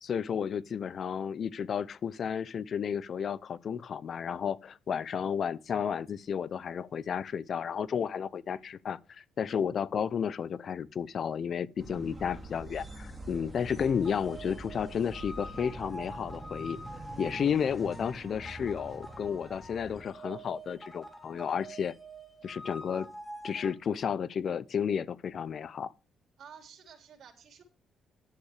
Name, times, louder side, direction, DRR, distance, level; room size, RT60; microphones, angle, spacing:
voice 1, 0.0-16.8 17.2-21.9 22.4-23.1 23.4-25.9, left 7 dB, 55° left, 0.6 m, -32 dB
sound 1, 11.8-20.0, right 1 dB, 15° right, 3.9 m, -45 dB
sound 2, 13.8-23.7, right 1 dB, 5° left, 3.2 m, -46 dB
voice 2, 26.4-27.6, right 7 dB, 65° right, 4.0 m, -52 dB
11.5 x 8.5 x 4.9 m
cardioid pair, 90°, 0 cm